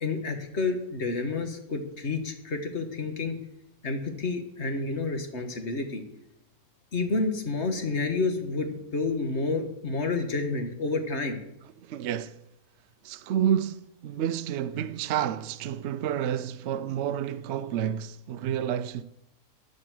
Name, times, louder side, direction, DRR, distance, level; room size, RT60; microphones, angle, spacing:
voice 1, 0.0-3.3 3.8-6.0 6.9-11.4, left 3 dB, 50° left, 1.7 m, -29 dB
voice 2, 11.8-12.4 13.0-19.0, right 9 dB, 65° right, 0.7 m, -29 dB
10.5 x 7.7 x 7.6 m
omnidirectional pair, 1.6 m